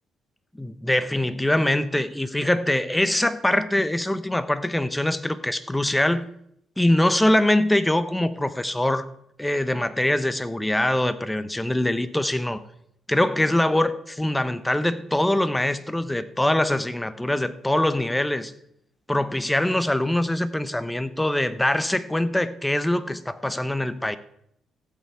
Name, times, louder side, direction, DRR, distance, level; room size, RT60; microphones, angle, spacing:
voice 1, 0.6-6.2 6.8-9.1 9.4-12.6 13.1-18.5 19.1-24.2, left 1 dB, 10° left, 13 dB, 0.9 m, -23 dB
15.0 x 8.3 x 4.6 m, 0.73 s
cardioid pair, 90°, 0 cm